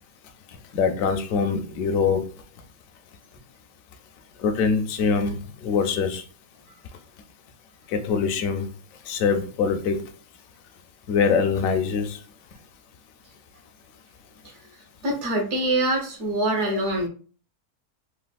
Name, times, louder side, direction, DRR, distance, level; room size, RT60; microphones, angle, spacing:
voice 1, 0.7-2.3 4.4-6.2 7.9-8.7 9.1-10.0 11.1-12.2, left 5 dB, 70° left, 6 dB, 0.9 m, -23 dB
voice 2, 15.0-17.1, right 1 dB, 55° right, 2 dB, 1.1 m, -24 dB
3.3 x 2.4 x 2.3 m, 0.38 s
omnidirectional pair, 1.6 m